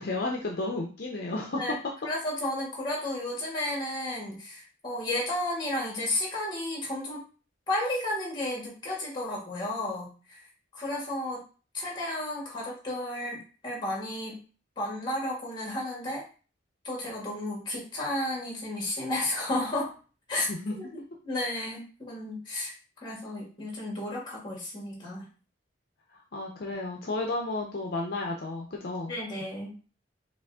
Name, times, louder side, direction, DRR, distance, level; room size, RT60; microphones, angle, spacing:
voice 1, 0.0-1.8 20.5-20.8 26.1-29.1, left 2 dB, 50° left, 0 dB, 0.6 m, -32 dB
voice 2, 2.0-7.2 7.7-10.4 10.7-11.4 11.7-14.4 14.8-16.2 16.8-19.9 20.3-20.5 20.8-22.7 23.0-25.3 29.1-29.7, left 1 dB, 20° left, -3 dB, 1.8 m, -33 dB
5.2 x 2.4 x 3.5 m, 0.37 s
head